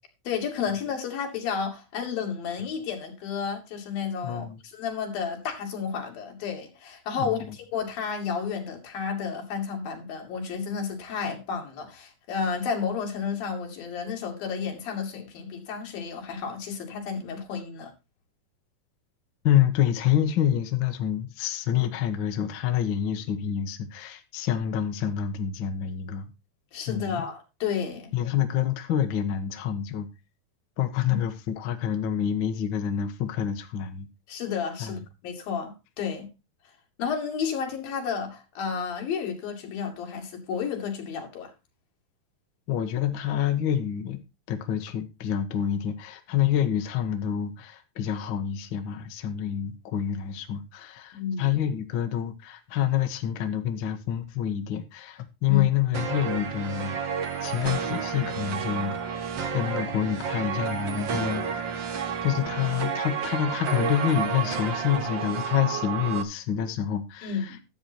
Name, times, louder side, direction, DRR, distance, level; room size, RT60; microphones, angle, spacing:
voice 1, 0.3-17.9 26.7-28.1 31.1-31.2 34.3-36.3 37.0-41.5 51.1-51.6 55.5-55.6 67.2-67.6, left 6 dB, 90° left, 4.1 m, -32 dB
voice 2, 4.2-4.6 7.2-7.4 19.4-26.3 26.9-27.2 28.1-30.1 30.8-34.1 34.8-35.0 42.7-44.2 44.5-61.4 62.2-67.6, left 10 dB, 55° left, 1.4 m, -27 dB
sound 1, 55.9-66.2, right 7 dB, 90° right, 1.0 m, -31 dB
12.0 x 7.9 x 4.3 m
omnidirectional pair, 4.0 m